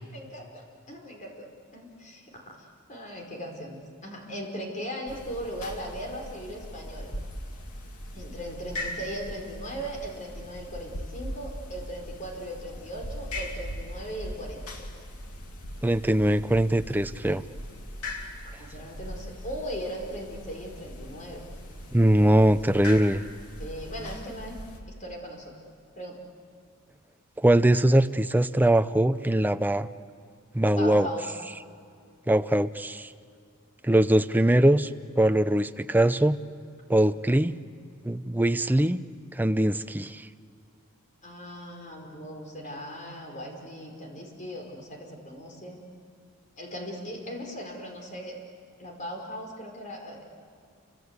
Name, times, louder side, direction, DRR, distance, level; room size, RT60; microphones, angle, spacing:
voice 1, 0.1-1.5 1.7-7.1 8.1-14.9 18.6-21.4 23.6-24.6 25.0-25.6 25.9-26.2 30.7-31.3 41.2-45.8 46.6-48.4 48.8-50.2, equal, 35° left, 1 dB, 4.8 m, -38 dB
sound 1, 5.1-24.8, left 1 dB, 80° left, 2.9 m, -40 dB
voice 2, 15.8-17.4 21.9-23.2 27.4-29.9 30.5-31.1 32.3-33.1 33.8-34.9 35.2-36.4 36.9-37.5 38.0-39.0 39.3-40.3, right 1 dB, 10° right, 10 dB, 0.6 m, -22 dB
29.5 x 25.0 x 8.1 m, 2.3 s
head